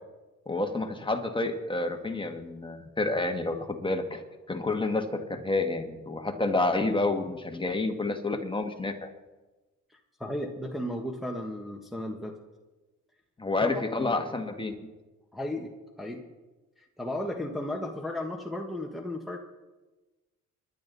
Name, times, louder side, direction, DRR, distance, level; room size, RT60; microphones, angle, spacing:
voice 1, 0.5-4.2 4.5-9.1 13.4-14.7, left 2 dB, 15° left, 5 dB, 1.7 m, -29 dB
voice 2, 10.2-12.3 13.6-13.7 14.0-14.1 15.3-15.7 16.0-16.3 16.8-19.4, left 1 dB, ahead, 0 dB, 1.4 m, -34 dB
27.0 x 11.0 x 4.1 m, 1.2 s
cardioid pair, 90°, 30 cm